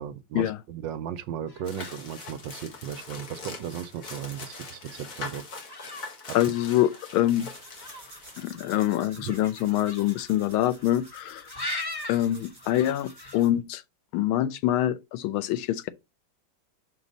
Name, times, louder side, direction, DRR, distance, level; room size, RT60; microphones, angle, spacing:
voice 1, 0.0-5.4, right 9 dB, 75° right, 1.2 m, -36 dB
Black Headed Gulls Swooping, 1.5-13.5, left 1 dB, 20° left, 0.6 m, -43 dB
sound 1, 1.6-8.5, left 3 dB, 45° left, 1.8 m, -42 dB
voice 2, 6.3-7.5 8.4-11.5 12.1-13.8 14.1-15.9, left 13 dB, 85° left, 1.5 m, -25 dB
sound 2, 7.1-13.6, right 2 dB, 20° right, 2.3 m, -51 dB
6.0 x 3.9 x 5.2 m
omnidirectional pair, 2.2 m